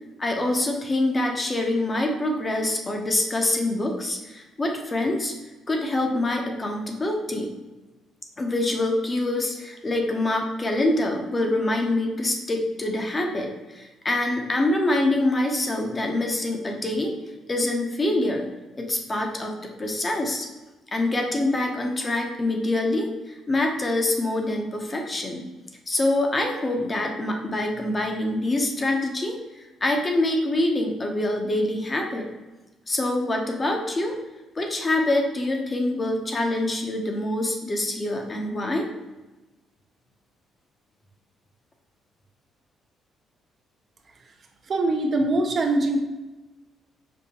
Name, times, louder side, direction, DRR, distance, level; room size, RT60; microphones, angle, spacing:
voice 1, 0.2-5.3 5.7-7.5 8.4-17.1 17.5-18.5 18.8-20.5 20.9-25.5 25.9-32.3 32.9-34.2 34.6-38.9, left 1 dB, 25° left, 2 dB, 0.6 m, -25 dB
voice 2, 44.7-46.0, right 2 dB, 45° right, 3 dB, 0.5 m, -22 dB
5.2 x 2.1 x 2.8 m, 1.1 s
cardioid pair, 100°, 0 cm